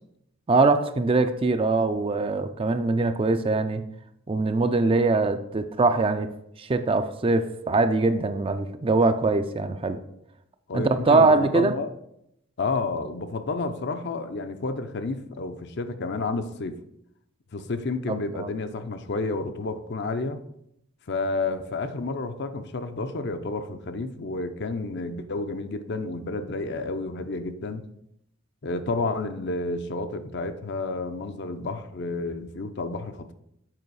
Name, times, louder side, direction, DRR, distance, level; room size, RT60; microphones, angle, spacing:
voice 1, 0.5-3.8 4.3-6.3 6.6-10.0 10.7-11.7 18.4-18.5, right 3 dB, 25° right, 9 dB, 0.4 m, -22 dB
voice 2, 10.7-11.9 12.6-16.8 17.5-20.4 21.1-27.8 28.6-33.3, left 3 dB, 55° left, 8 dB, 0.6 m, -30 dB
7.7 x 4.9 x 4.7 m, 0.77 s
head